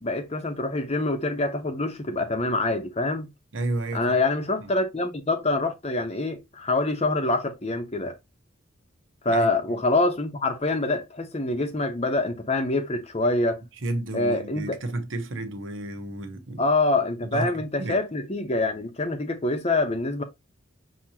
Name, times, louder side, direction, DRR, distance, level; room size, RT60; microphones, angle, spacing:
voice 1, 0.0-3.3 3.9-8.2 9.2-13.6 14.1-14.8 16.6-20.2, left 2 dB, 30° left, 0.8 m, -25 dB
voice 2, 3.5-4.2 4.6-4.7 9.3-9.8 13.8-16.6 17.2-18.0, right 2 dB, 65° right, 0.9 m, -32 dB
5.9 x 2.9 x 2.8 m
head